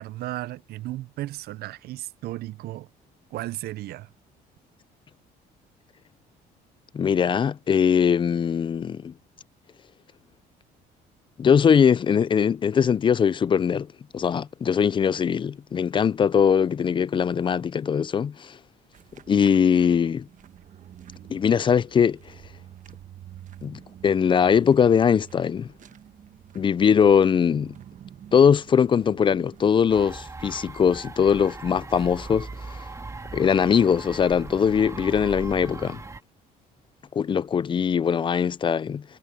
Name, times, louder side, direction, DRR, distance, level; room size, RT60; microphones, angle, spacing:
voice 1, 0.0-2.9 3.3-4.1, right 16 dB, 70° right, 0.5 m, -34 dB
voice 2, 6.9-9.1 11.4-13.9 14.1-18.6 19.3-20.3 21.3-22.2 23.6-25.7 26.5-27.7 28.3-32.9 33.3-36.0 37.1-39.0, left 7 dB, 30° left, 0.4 m, -21 dB
sound 1, 18.9-30.3, right 10 dB, 50° right, 1.1 m, -48 dB
sound 2, 29.9-36.2, right 3 dB, 20° right, 1.8 m, -39 dB
cardioid pair, 110°, 17 cm